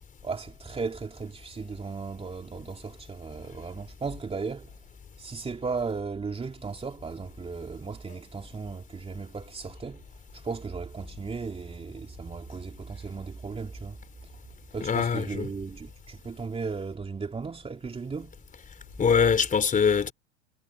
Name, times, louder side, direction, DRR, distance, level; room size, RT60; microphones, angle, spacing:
voice 1, 0.2-4.7 5.2-10.1 10.3-14.0 14.7-18.4, right 4 dB, 15° right, 3.0 m, -36 dB
voice 2, 14.8-15.5 19.0-20.1, left 6 dB, 25° left, 4.4 m, -23 dB
hypercardioid pair, 100°, 33 cm